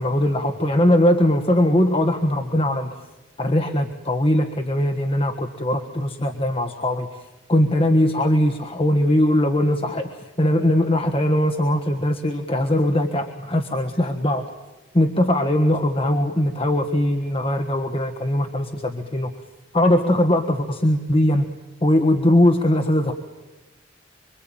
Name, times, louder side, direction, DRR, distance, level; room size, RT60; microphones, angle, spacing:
voice 1, 0.0-2.9 3.4-14.5 14.9-19.3 19.7-21.5 21.8-23.1, left 1 dB, 30° left, 4 dB, 1.5 m, -20 dB
26.0 x 24.5 x 9.0 m, 1.1 s
head